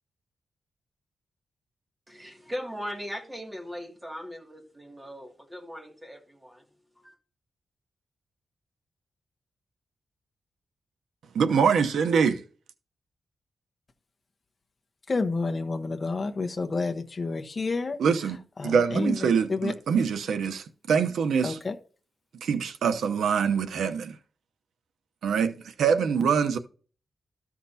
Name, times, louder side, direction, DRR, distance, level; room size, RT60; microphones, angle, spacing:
voice 1, 2.1-6.6 7.0-7.2, equal, 10° right, 2.5 m, -39 dB
voice 2, 11.3-12.4 18.0-21.6 22.4-24.2 25.2-26.6, right 6 dB, 90° right, 0.9 m, -24 dB
voice 3, 15.1-18.0 18.6-19.2 19.5-19.7 21.4-21.7, left 3 dB, 35° left, 1.1 m, -29 dB
13.5 x 5.9 x 2.8 m
wide cardioid pair, 115°, 0 cm